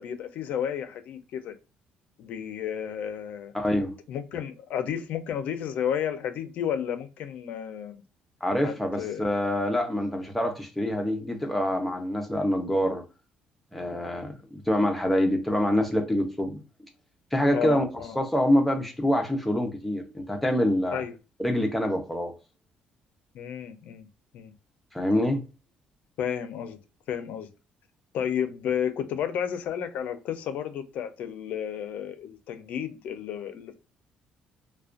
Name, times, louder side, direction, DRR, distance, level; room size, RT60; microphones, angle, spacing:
voice 1, 0.0-1.5 2.2-3.5 4.1-8.0 8.6-9.3 17.5-18.2 20.9-21.1 23.3-24.1 24.3-24.5 26.2-26.8 27.1-27.5 28.1-33.7, left 8 dB, 65° left, 0.4 m, -32 dB
voice 2, 3.5-3.9 8.4-13.0 13.7-16.6 17.3-17.9 18.2-21.0 21.4-22.3 24.9-25.4, left 1 dB, 5° left, 0.5 m, -26 dB
2.4 x 2.1 x 2.4 m
cardioid pair, 150°, 3 cm